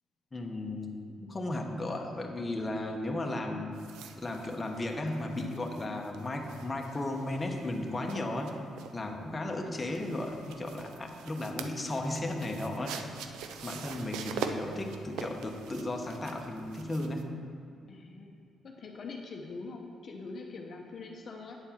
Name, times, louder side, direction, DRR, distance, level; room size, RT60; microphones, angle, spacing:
voice 1, 0.3-3.8 4.1-8.5 8.9-13.0 13.6-17.2, left 1 dB, 20° left, 1 dB, 1.0 m, -35 dB
sound 1, 3.7-17.2, right 6 dB, 90° right, 0.5 m, -44 dB
voice 2, 17.9-18.3 18.6-21.6, left 3 dB, 50° left, 1 dB, 0.8 m, -43 dB
8.9 x 4.4 x 7.3 m, 2.5 s
cardioid pair, 90°, 0 cm